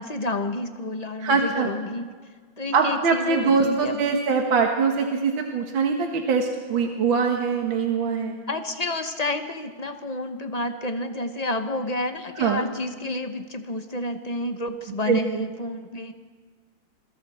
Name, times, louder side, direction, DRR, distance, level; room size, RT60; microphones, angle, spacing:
voice 1, 0.0-2.1 2.6-4.2 8.5-16.1, left 2 dB, 30° left, 7 dB, 0.8 m, -30 dB
voice 2, 1.2-1.7 2.7-8.4 12.4-12.7 15.1-15.5, right 5 dB, 70° right, 2 dB, 2.1 m, -23 dB
27.5 x 22.5 x 4.3 m, 1.5 s
omnidirectional pair, 2.3 m